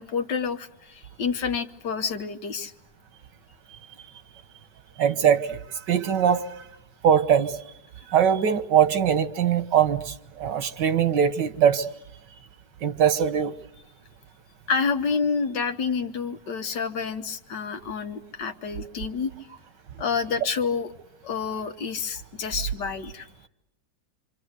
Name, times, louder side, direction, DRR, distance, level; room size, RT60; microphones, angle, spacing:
voice 1, 0.0-2.7 14.7-19.3 20.0-20.9 21.2-23.3, left 5 dB, 80° left, 7 dB, 1.9 m, -28 dB
voice 2, 5.0-5.6 5.9-6.5 7.0-7.6 8.1-11.9 12.8-13.5, right 8 dB, 90° right, 11 dB, 1.9 m, -21 dB
27.0 x 26.0 x 8.1 m, 0.79 s
omnidirectional pair, 1.8 m